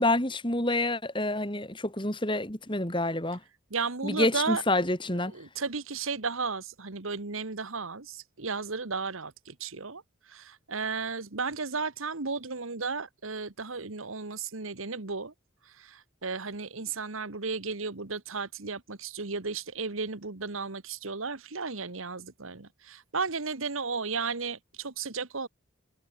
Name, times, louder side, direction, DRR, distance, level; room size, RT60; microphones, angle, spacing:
voice 1, 0.0-3.4 4.0-5.3, left 2 dB, 25° left, 3.5 m, -28 dB
voice 2, 3.7-4.6 5.3-10.0 10.3-15.3 15.8-25.5, right 4 dB, 80° right, 1.7 m, -34 dB
head